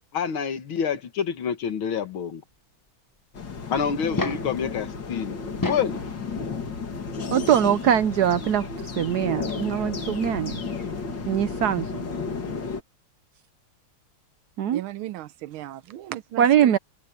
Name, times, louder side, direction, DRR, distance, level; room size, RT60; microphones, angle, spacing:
voice 1, 0.1-2.4 3.7-5.4 5.7-6.0, left 7 dB, 80° left, 2.4 m, -27 dB
sound 1, 3.3-12.8, left 4 dB, 60° left, 3.1 m, -33 dB
sound 2, 4.1-4.6 5.4-6.0 7.3-7.4 9.2-9.3 9.5-9.6, left 2 dB, 30° left, 0.3 m, -29 dB
voice 2, 7.3-8.7 9.0-10.6 11.3-12.0 14.6-14.8 16.4-16.8, right 10 dB, 65° right, 1.0 m, -22 dB
voice 3, 14.7-16.8, right 14 dB, 90° right, 1.6 m, -36 dB
omnidirectional pair, 2.2 m